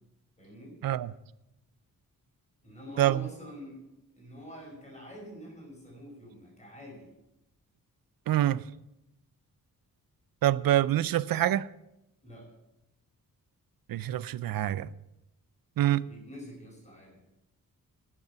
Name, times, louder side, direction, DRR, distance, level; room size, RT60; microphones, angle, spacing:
voice 1, 0.4-0.8 2.6-3.8 4.1-7.1 12.2-12.5 16.0-17.2, equal, 20° left, 5.2 m, -46 dB
voice 2, 8.3-8.6 10.4-11.7 13.9-14.9 15.8-16.0, right 13 dB, 75° right, 0.5 m, -26 dB
12.0 x 8.2 x 6.8 m
wide cardioid pair, 165°, 35 cm